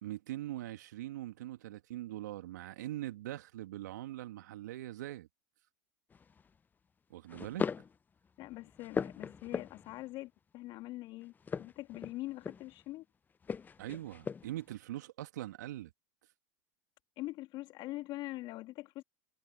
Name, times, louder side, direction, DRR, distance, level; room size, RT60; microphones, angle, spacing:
voice 1, 0.0-5.3 7.1-7.7 13.8-15.9, right 14 dB, 75° right, 2.1 m, -42 dB
sound 1, 6.1-6.5 7.3-8.0 8.4-10.0 11.4-12.8 13.4-14.6, left 6 dB, 20° left, 0.4 m, -39 dB
voice 2, 8.4-11.3 11.6-13.0 17.2-19.0, left 18 dB, 50° left, 2.4 m, -43 dB
hypercardioid pair, 85°, 10 cm